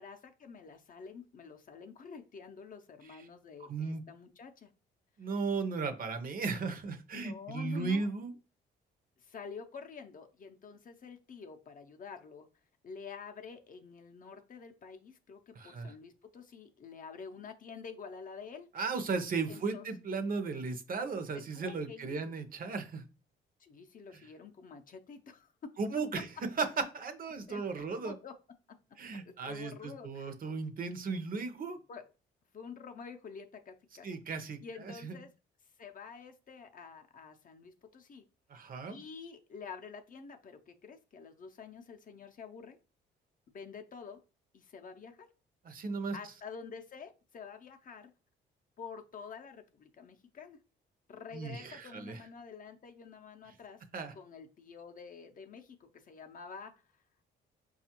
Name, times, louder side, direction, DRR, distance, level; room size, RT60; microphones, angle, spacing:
voice 1, 0.0-4.7 7.1-8.1 9.2-12.5 12.8-18.7 19.5-19.9 21.5-22.3 23.6-25.7 27.5-28.3 28.7-28.8 29.1-30.3 31.9-32.0 32.5-34.1 34.6-35.3 35.8-38.2 38.9-42.8 43.5-44.2 44.5-45.3 46.1-48.1 48.8-50.6 51.1-53.8 54.1-56.7, left 5 dB, 45° left, 0.5 m, -48 dB
voice 2, 3.7-4.0 5.2-8.3 15.6-15.9 18.7-23.1 25.8-26.3 26.6-26.7 26.9-28.1 29.0-31.8 34.0-34.6 35.0-35.2 38.5-39.0 45.6-46.2 51.3-52.2 53.9-54.1, right 4 dB, 45° right, 0.6 m, -36 dB
5.0 x 2.3 x 2.9 m
cardioid pair, 90°, 20 cm